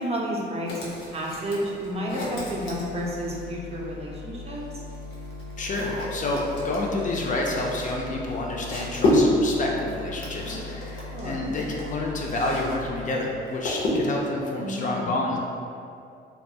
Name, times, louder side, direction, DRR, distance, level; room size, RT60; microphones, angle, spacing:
voice 1, 0.0-4.8 11.1-11.5 14.6-15.1, equal, 30° right, -3 dB, 0.5 m, -31 dB
sound 1, 0.7-3.5 4.5-12.8 13.0-14.3, left 1 dB, 90° left, 0.6 m, -30 dB
sound 2, 2.4-13.0, left 3 dB, 85° right, 0.4 m, -39 dB
voice 2, 5.6-15.4, left 2 dB, 40° left, -1 dB, 0.4 m, -29 dB
2.3 x 2.2 x 2.7 m, 2.5 s
cardioid pair, 90°, 20 cm